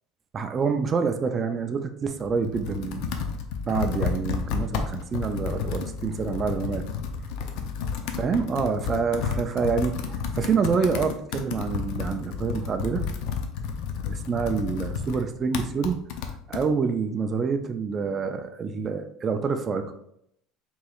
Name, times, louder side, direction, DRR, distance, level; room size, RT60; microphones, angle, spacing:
voice 1, 0.3-3.1 3.7-6.8 8.2-13.0 14.0-16.0 16.5-19.9, right 5 dB, 25° right, 7 dB, 0.3 m, -27 dB
Computer keyboard, 2.1-16.7, left 6 dB, 65° left, 0.5 m, -31 dB
4.6 x 3.0 x 2.4 m, 0.73 s
cardioid pair, 135°, 0 cm